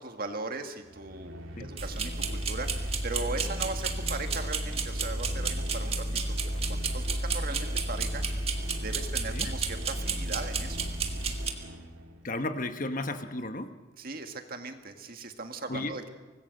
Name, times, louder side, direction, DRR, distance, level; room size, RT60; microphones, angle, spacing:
voice 1, 0.0-1.3 1.6-6.4 6.7-8.2 8.6-10.8 14.0-16.1, right 3 dB, 45° right, 6 dB, 1.8 m, -38 dB
sound 1, 0.7-12.4, equal, 80° right, 2.5 m, -44 dB
sound 2, 1.8-11.5, right 3 dB, 30° right, 1.7 m, -31 dB
voice 2, 12.2-13.8 15.7-16.0, left 2 dB, 40° left, 8 dB, 1.1 m, -34 dB
24.5 x 19.5 x 6.6 m, 1.3 s
head